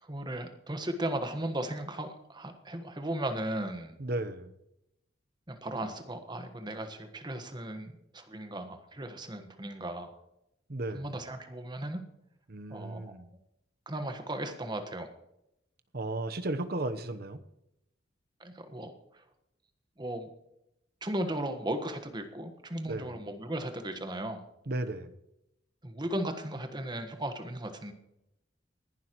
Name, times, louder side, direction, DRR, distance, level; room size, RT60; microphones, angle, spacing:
voice 1, 0.0-3.9 5.5-10.1 10.9-12.0 12.7-13.1 13.8-15.1 18.4-19.2 20.0-20.3 21.0-24.5 25.8-27.9, right 1 dB, 25° right, 7 dB, 1.4 m, -36 dB
voice 2, 4.0-4.5 10.7-11.0 12.5-13.3 15.9-17.4 22.8-23.2 24.7-25.1, right 2 dB, 60° right, 9 dB, 1.0 m, -34 dB
20.0 x 11.5 x 3.1 m, 0.82 s
head